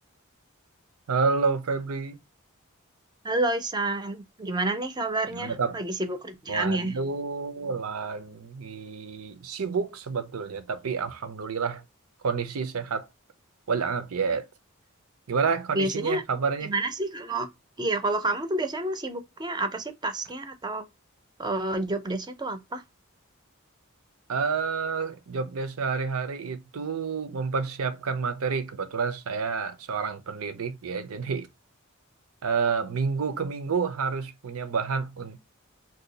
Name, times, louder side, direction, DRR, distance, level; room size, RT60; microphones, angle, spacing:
voice 1, 1.1-2.2 5.3-5.8 6.5-11.8 12.2-13.1 13.7-14.4 15.3-16.7 24.3-31.5 32.4-35.4, right 5 dB, 80° right, 0.6 m, -29 dB
voice 2, 3.2-6.9 15.7-16.2 16.6-17.5 17.8-20.9 21.4-22.8, right 2 dB, 20° right, 0.5 m, -29 dB
2.7 x 2.3 x 3.8 m
head